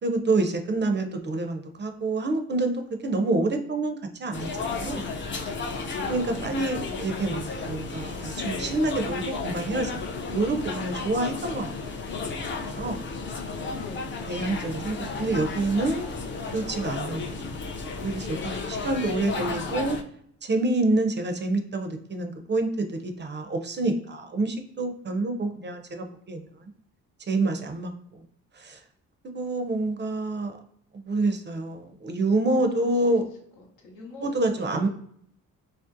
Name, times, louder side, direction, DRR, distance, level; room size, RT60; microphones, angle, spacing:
voice 1, 0.0-5.0 6.1-12.0 12.3-12.4 12.8-13.0 14.3-16.1 16.5-17.5 18.0-20.0 20.4-26.7 27.3-28.2 28.5-28.8 29.3-30.6 30.9-33.3 34.2-34.9, right 2 dB, 30° right, 6 dB, 0.4 m, -27 dB
sound 1, 4.3-20.0, left 4 dB, 35° left, 0.4 m, -33 dB
voice 2, 13.7-14.2 18.4-19.8 32.5-33.2 33.6-34.4 34.7-34.9, left 2 dB, 80° left, 0 dB, 0.8 m, -45 dB
2.6 x 2.0 x 2.5 m, 0.68 s
supercardioid pair, 60°, 36 cm